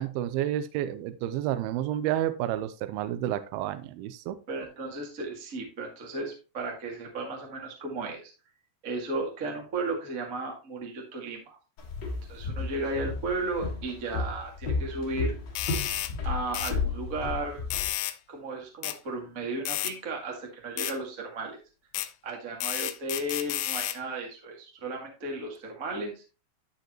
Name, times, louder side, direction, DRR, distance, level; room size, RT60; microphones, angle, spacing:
voice 1, 0.0-4.4, right 12 dB, 80° right, 12 dB, 2.3 m, -30 dB
voice 2, 4.5-8.3 8.8-11.6 12.3-15.3 16.2-17.6 18.3-21.6 22.2-26.2, right 2 dB, 35° right, 0 dB, 1.3 m, -34 dB
Walk footsteps, 11.8-17.9, left 4 dB, 55° left, 1.1 m, -33 dB
sound 1, 15.6-16.1 16.5-16.8 17.7-18.2 18.8-19.0 19.7-19.9 20.8-21.0 21.9-22.1 22.6-24.0, left 13 dB, 80° left, 2.6 m, -31 dB
11.5 x 5.2 x 3.0 m, 0.32 s
omnidirectional pair, 4.8 m